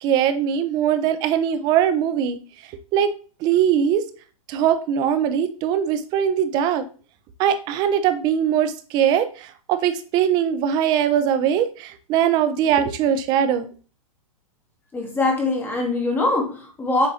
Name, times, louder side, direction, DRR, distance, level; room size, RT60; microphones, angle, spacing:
voice 1, 0.0-2.4 2.9-3.1 3.4-4.0 4.5-6.8 7.4-13.7, right 9 dB, 25° right, 11 dB, 0.4 m, -21 dB
voice 2, 14.9-17.1, left 2 dB, 10° left, 1 dB, 0.8 m, -22 dB
7.2 x 2.5 x 2.7 m, 0.38 s
hypercardioid pair, 150°, 18 cm